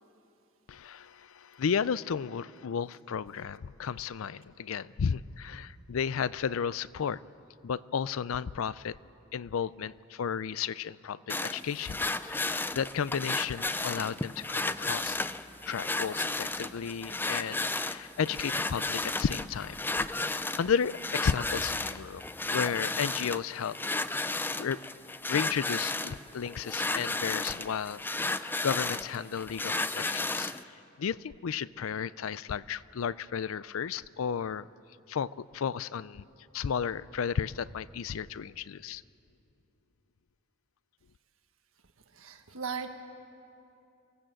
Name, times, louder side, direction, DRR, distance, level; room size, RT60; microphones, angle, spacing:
voice 1, 0.7-7.2 7.6-9.0 9.3-15.2 15.7-19.8 20.2-22.2 22.5-23.8 24.1-24.3 24.6-24.8 25.3-30.5 31.0-34.7 35.1-36.3 36.5-39.0, left 7 dB, 80° left, 19 dB, 0.4 m, -33 dB
sound 1, 11.3-30.6, left 2 dB, 10° left, 0.4 m, -33 dB
voice 2, 42.1-42.9, right 6 dB, 80° right, 6 dB, 1.5 m, -37 dB
24.0 x 17.0 x 7.6 m, 2.7 s
head